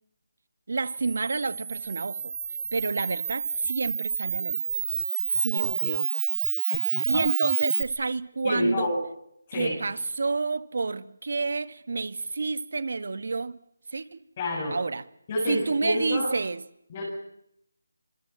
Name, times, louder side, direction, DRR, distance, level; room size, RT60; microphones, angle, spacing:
voice 1, 0.7-2.3 2.7-4.6 5.3-5.7 7.0-8.9 9.5-13.6 13.9-14.2 14.7-15.0 15.4-16.6, right 3 dB, 55° right, 1.8 m, -29 dB
Camera, 0.8-7.8, right 6 dB, 30° right, 1.9 m, -29 dB
voice 2, 5.5-6.0 6.5-7.2 8.4-9.0 9.5-9.8 14.4-14.8 15.3-16.3 16.9-17.0, left 1 dB, 25° left, 7.4 m, -29 dB
26.0 x 25.5 x 7.2 m
figure-of-eight pair, 175°, 0 cm